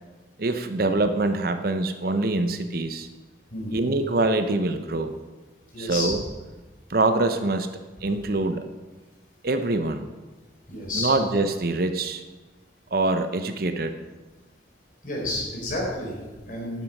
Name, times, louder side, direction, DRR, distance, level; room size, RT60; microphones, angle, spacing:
voice 1, 0.4-3.1 3.7-5.1 5.8-6.2 6.9-7.7 8.0-8.6 9.4-10.1 10.9-12.2 12.9-13.9, right 2 dB, 55° right, 8 dB, 0.8 m, -24 dB
voice 2, 3.5-3.9 5.7-6.1 10.7-11.1 15.0-16.8, left 1 dB, 50° left, -2 dB, 4.0 m, -30 dB
12.0 x 9.2 x 5.4 m, 1.2 s
head